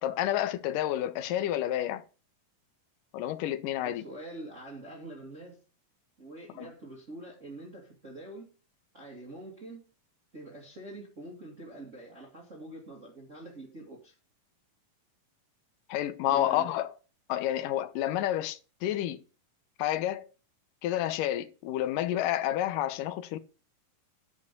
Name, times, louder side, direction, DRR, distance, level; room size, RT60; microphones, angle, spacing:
voice 1, 0.0-2.0 3.1-4.0 6.6-6.7 15.9-16.9 17.3-19.2 19.8-20.3 20.8-23.4, left 12 dB, 75° left, 2.4 m, -30 dB
voice 2, 3.8-5.6 6.2-8.5 8.9-9.8 10.3-14.1 16.3-16.7, right 1 dB, 25° right, 2.4 m, -45 dB
11.0 x 5.3 x 6.9 m
omnidirectional pair, 4.1 m